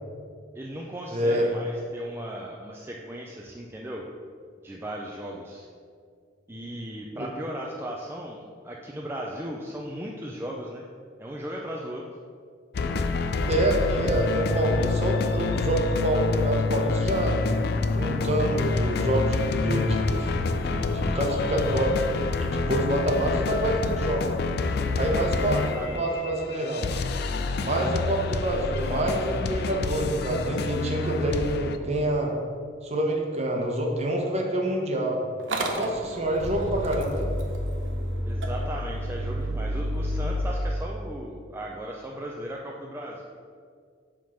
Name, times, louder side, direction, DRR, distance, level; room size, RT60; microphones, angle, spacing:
voice 1, 0.6-4.0 4.6-5.7 6.5-10.8 11.2-12.1 25.3-26.2 38.2-43.2, right 1 dB, 15° right, -2 dB, 0.4 m, -37 dB
voice 2, 1.1-1.5 7.2-7.3 13.5-17.4 17.9-20.3 20.6-21.9 22.4-24.3 25.0-26.9 27.6-32.3 32.8-35.2 35.8-37.3, right 1 dB, 35° right, 0 dB, 1.0 m, -27 dB
sound 1, 12.7-31.8, left 3 dB, 55° left, 0.4 m, -27 dB
Motor vehicle (road) / Engine starting, 35.4-40.4, equal, 80° right, 0.8 m, -30 dB
7.6 x 3.7 x 5.6 m, 2.1 s
head